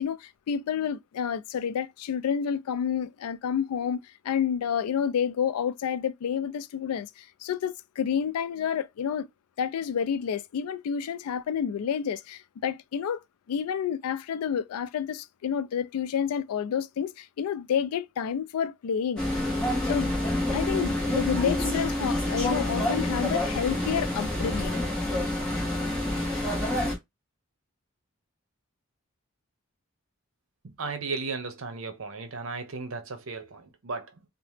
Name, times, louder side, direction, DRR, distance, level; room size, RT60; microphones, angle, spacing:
voice 1, 0.0-9.3 9.6-13.2 13.5-19.2 19.8-20.1 20.5-24.8, left 8 dB, 85° left, 0.3 m, -29 dB
sound 1, 19.2-26.9, left 1 dB, 5° left, 0.9 m, -27 dB
voice 2, 30.6-34.2, right 4 dB, 65° right, 0.7 m, -35 dB
2.8 x 2.1 x 3.2 m
head